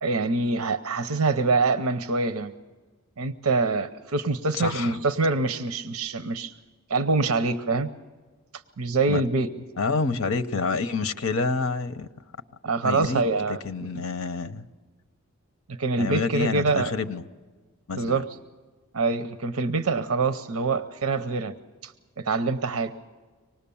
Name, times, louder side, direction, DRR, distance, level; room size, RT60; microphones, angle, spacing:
voice 1, 0.0-2.5 3.2-6.5 6.9-7.9 8.8-9.5 12.6-13.9 15.8-16.9 18.0-18.3 18.9-21.5 21.8-22.9, right 3 dB, 80° right, 10 dB, 0.8 m, -25 dB
voice 2, 4.5-5.0 9.1-9.2 9.8-12.1 12.8-13.2 13.6-14.7 16.0-17.2 17.9-18.2, left 4 dB, 70° left, 10 dB, 0.9 m, -28 dB
25.5 x 19.0 x 7.1 m, 1.4 s
head